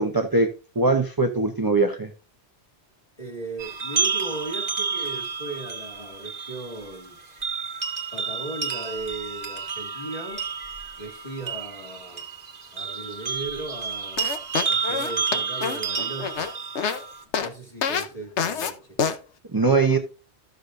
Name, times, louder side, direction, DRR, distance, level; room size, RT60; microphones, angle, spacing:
voice 1, 0.0-2.1 19.5-20.0, right 3 dB, 25° right, 0.6 m, -21 dB
voice 2, 3.2-7.2 8.1-10.5 11.0-12.3 12.7-14.2 14.7-16.5 17.4-19.0, right 2 dB, 35° left, 2.1 m, -37 dB
sound 1, 3.6-17.2, right 5 dB, 40° right, 1.3 m, -30 dB
sound 2, 14.2-17.0 17.3-17.5 17.8-18.1 18.4-18.7 19.0-19.2, left 6 dB, 80° left, 1.1 m, -26 dB
13.0 x 6.7 x 2.6 m
omnidirectional pair, 1.2 m